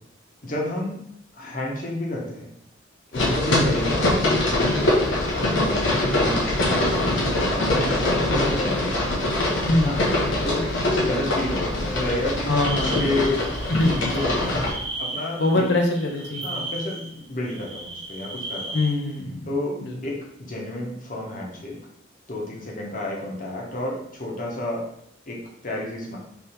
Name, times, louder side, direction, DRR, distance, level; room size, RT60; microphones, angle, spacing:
voice 1, 0.4-0.9 1.4-2.5 3.1-4.3 4.6-4.9 5.3-8.9 9.7-9.9 10.4-13.4 14.1-14.6 15.0-15.6 16.4-18.8 19.5-21.8 22.3-24.8 25.3-25.4 25.6-26.2, left 1 dB, 45° left, -3 dB, 1.1 m, -31 dB
sound 1, 3.1-14.7, left 1 dB, 90° left, 1.2 m, -23 dB
voice 2, 12.5-13.1 13.7-14.3 15.4-16.4 18.7-19.5 19.8-20.0, left 2 dB, 65° left, 1 dB, 0.7 m, -23 dB
sound 2, 12.6-19.2, right 2 dB, 75° right, 0.7 m, -35 dB
3.5 x 3.3 x 4.4 m, 0.74 s
head